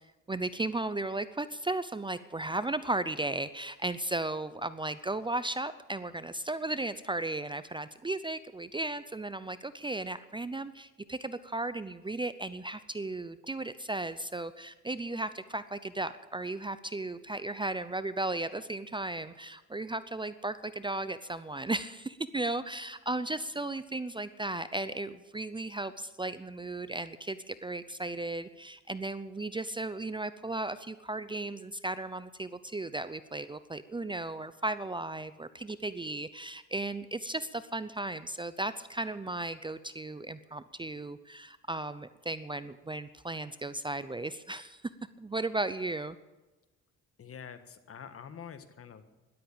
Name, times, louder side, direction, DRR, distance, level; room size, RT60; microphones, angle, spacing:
voice 1, 0.3-44.8 45.2-46.2, right 2 dB, 15° right, 14 dB, 0.6 m, -35 dB
voice 2, 47.2-49.1, left 7 dB, 50° left, 10 dB, 1.6 m, -46 dB
13.0 x 11.5 x 8.7 m, 1.1 s
cardioid pair, 90°, 30 cm